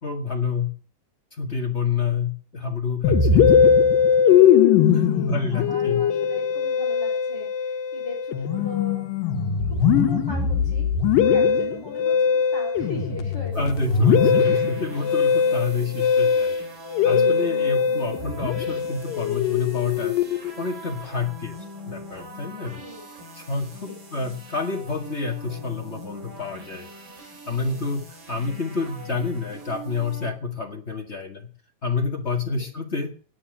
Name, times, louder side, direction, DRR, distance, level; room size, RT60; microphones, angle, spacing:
voice 1, 0.0-0.7 1.3-3.7 4.9-6.0 13.5-16.6 17.0-21.6 21.9-22.8 23.3-26.9 27.5-31.5 31.8-33.1, left 5 dB, 30° left, 3 dB, 1.4 m, -28 dB
Musical instrument, 3.0-20.6, left 7 dB, 85° left, 2.7 m, -20 dB
voice 2, 3.6-4.1 4.9-14.0 14.4-14.8 15.5-15.9 22.7-23.1 23.9-24.0 27.4-27.9 28.4-28.5 32.5-32.7, left 1 dB, 5° left, -4 dB, 5.1 m, -41 dB
sound 1, 13.5-30.3, right 2 dB, 40° right, 3.1 m, -42 dB
9.9 x 8.5 x 9.7 m, 0.41 s
omnidirectional pair, 3.8 m